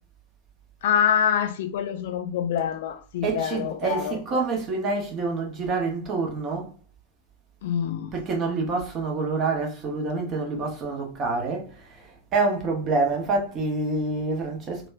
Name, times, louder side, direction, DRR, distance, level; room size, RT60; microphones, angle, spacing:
voice 1, 0.8-4.4 7.6-8.1, left 9 dB, 55° left, 0.4 m, -26 dB
voice 2, 3.2-6.7 8.1-11.7 12.3-14.9, right 3 dB, 30° right, 0.9 m, -27 dB
2.9 x 2.3 x 3.2 m
figure-of-eight pair, 90°, 0 cm